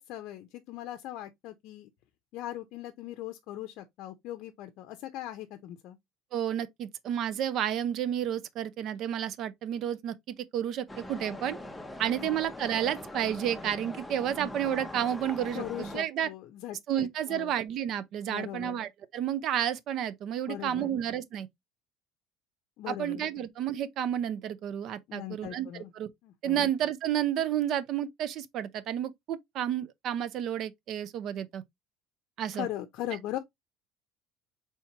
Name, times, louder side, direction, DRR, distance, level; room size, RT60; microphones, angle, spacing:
voice 1, 0.0-1.9 2.3-6.0 12.2-12.4 15.5-17.5 18.3-18.9 20.5-21.0 22.8-23.3 25.1-25.9 26.2-26.7 32.5-33.4, left 13 dB, 65° left, 0.5 m, -39 dB
voice 2, 6.3-11.6 12.0-16.3 16.9-21.5 22.9-26.1 26.4-31.6 32.4-32.7, right 10 dB, 55° right, 0.5 m, -31 dB
sound 1, 10.9-16.0, left 1 dB, 5° left, 0.7 m, -42 dB
4.3 x 3.5 x 2.8 m
cardioid pair, 115°, 0 cm